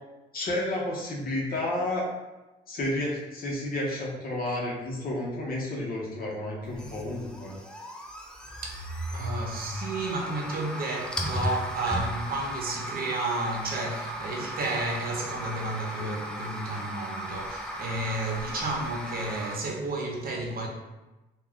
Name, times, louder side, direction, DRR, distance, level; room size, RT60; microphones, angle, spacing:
voice 1, 0.3-2.1 2.7-7.6, left 1 dB, 55° left, 0.9 m, -31 dB
sound 1, 6.6-19.6, equal, 5° left, 0.4 m, -36 dB
voice 2, 8.6-20.7, right 2 dB, 55° right, 0.7 m, -32 dB
2.3 x 2.2 x 3.5 m
supercardioid pair, 75°, 18 cm